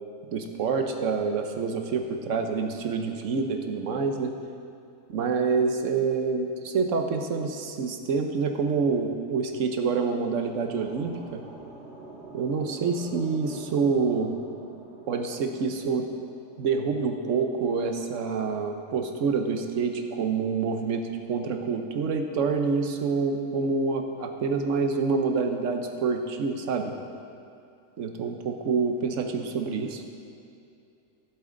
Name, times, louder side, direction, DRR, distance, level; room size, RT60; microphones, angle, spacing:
voice 1, 0.3-4.3 5.1-11.4 12.3-14.3 15.1-16.1 16.6-26.9 28.0-30.0, right 5 dB, 75° right, 5 dB, 1.2 m, -27 dB
sound 1, 10.1-17.1, right 1 dB, 45° right, 2.8 m, -46 dB
15.0 x 7.8 x 3.8 m, 2.7 s
omnidirectional pair, 1.3 m